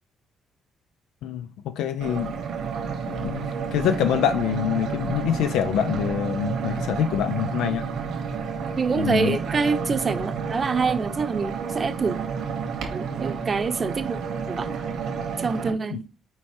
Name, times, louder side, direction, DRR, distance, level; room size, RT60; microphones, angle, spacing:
voice 1, 1.2-2.3 3.1-7.9 9.0-9.4 15.9-16.0, left 10 dB, 90° left, 0.5 m, -25 dB
sound 1, 2.0-15.7, right 6 dB, 80° right, 2.0 m, -30 dB
voice 2, 8.7-12.2 12.9-14.2 14.5-14.8 15.4-16.1, right 4 dB, 40° right, 0.8 m, -26 dB
5.9 x 4.5 x 4.4 m
cardioid pair, 90°, 0 cm